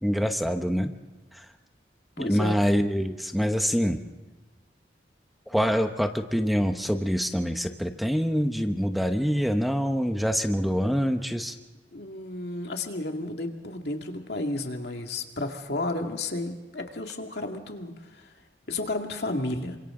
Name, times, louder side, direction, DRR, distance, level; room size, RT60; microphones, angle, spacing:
voice 1, 0.0-0.9 1.3-1.5 2.2-4.0 5.5-11.5, equal, ahead, 6 dB, 0.9 m, -25 dB
voice 2, 2.2-2.6 11.9-18.3 18.7-19.8, left 2 dB, 70° left, 3 dB, 2.2 m, -32 dB
29.0 x 25.5 x 3.8 m, 1.1 s
head